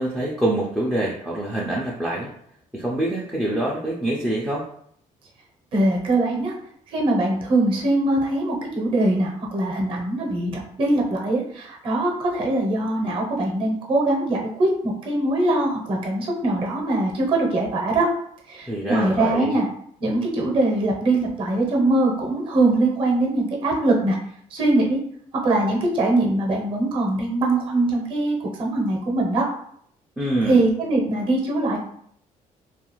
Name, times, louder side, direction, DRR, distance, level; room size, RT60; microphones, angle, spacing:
voice 1, 0.0-2.3 2.7-4.7 18.7-19.6 30.2-30.6, right 1 dB, 5° right, -4 dB, 0.3 m, -25 dB
voice 2, 5.7-6.5 6.9-18.1 18.5-19.6 20.0-24.2 24.5-25.0 25.3-29.5 30.4-31.8, right 2 dB, 40° right, -1 dB, 0.6 m, -22 dB
2.4 x 2.3 x 3.0 m, 0.65 s
cardioid pair, 170°, 14 cm